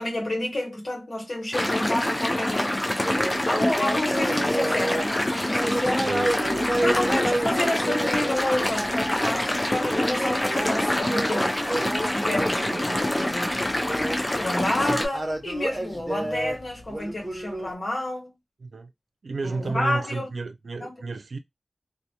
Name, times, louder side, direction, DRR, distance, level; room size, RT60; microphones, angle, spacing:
voice 1, 0.0-2.7 3.5-6.1 6.8-11.7 12.0-13.5 14.4-18.3 19.4-20.3 20.8-20.9, left 1 dB, 65° left, 1.0 m, -30 dB
sound 1, 1.5-15.1, left 1 dB, 30° left, 0.5 m, -26 dB
sound 2, 3.0-17.7, right 1 dB, 35° right, 0.7 m, -31 dB
voice 2, 6.0-6.4 6.7-7.0 12.7-12.9 13.2-13.4 14.9-15.0 18.6-18.9 19.2-21.4, right 3 dB, 80° right, 0.3 m, -32 dB
2.1 x 2.0 x 2.8 m
cardioid pair, 40°, 0 cm